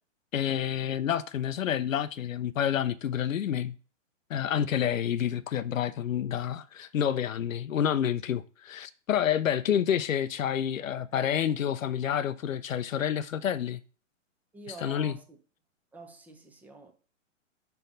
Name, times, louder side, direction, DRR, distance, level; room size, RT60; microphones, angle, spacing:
voice 1, 0.3-3.8 4.3-13.8 14.8-15.1, left 9 dB, 90° left, 0.6 m, -29 dB
voice 2, 14.5-15.4 15.9-16.9, right 2 dB, 5° right, 0.6 m, -47 dB
5.3 x 4.5 x 5.2 m
hypercardioid pair, 140°, 39 cm